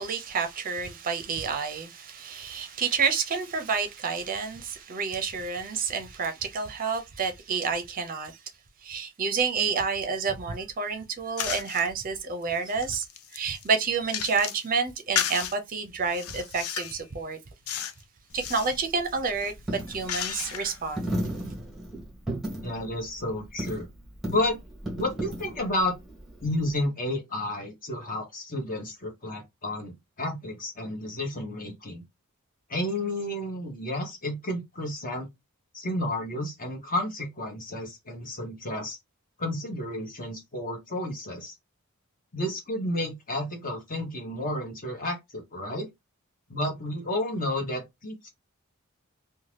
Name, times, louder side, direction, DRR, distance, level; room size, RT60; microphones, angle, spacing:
voice 1, 0.0-8.4 8.8-13.0 13.3-17.4 18.3-21.1, right 5 dB, 40° right, 0.5 m, -29 dB
sound 1, 11.4-11.9 12.4-14.7 15.1-15.6 16.1-17.0 17.7-18.0 18.3-18.8 19.3-20.8, left 9 dB, 85° left, 0.4 m, -33 dB
Coin (dropping), 18.3-26.9, right 1 dB, ahead, 1.0 m, -36 dB
voice 2, 22.6-23.9 24.3-24.6 25.0-25.9 26.4-32.0 32.7-35.3 35.7-39.0 39.4-41.5 42.3-45.9 46.5-48.3, left 1 dB, 40° left, 1.1 m, -31 dB
2.7 x 2.2 x 3.2 m
head